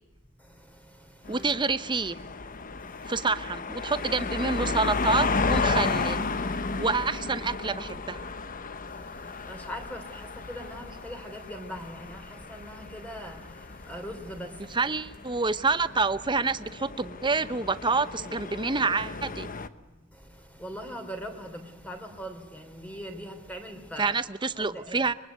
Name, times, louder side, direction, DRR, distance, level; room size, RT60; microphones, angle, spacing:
voice 1, 0.4-1.4 2.9-3.1 8.8-14.8 20.1-24.1 24.5-25.0, equal, 5° left, 3.2 m, -41 dB
sound 1, 1.3-19.7, left 4 dB, 40° left, 1.0 m, -33 dB
voice 2, 1.3-2.2 3.1-6.2 6.8-8.3 14.7-19.5 24.0-25.1, right 4 dB, 20° right, 0.8 m, -27 dB
24.5 x 22.5 x 9.6 m
head